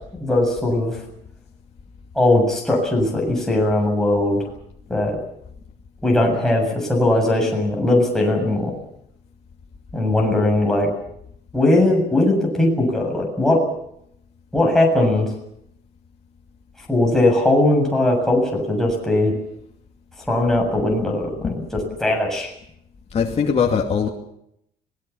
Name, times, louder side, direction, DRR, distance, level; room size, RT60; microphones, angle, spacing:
voice 1, 0.2-1.0 2.2-4.5 4.9-5.2 6.0-8.7 9.9-10.9 11.5-13.6 14.5-15.3 16.9-19.3 20.3-22.5, left 1 dB, 5° left, -1 dB, 7.4 m, -19 dB
voice 2, 23.1-24.1, left 6 dB, 40° left, 0 dB, 2.7 m, -20 dB
26.0 x 19.0 x 7.1 m, 0.74 s
cardioid pair, 110°, 17 cm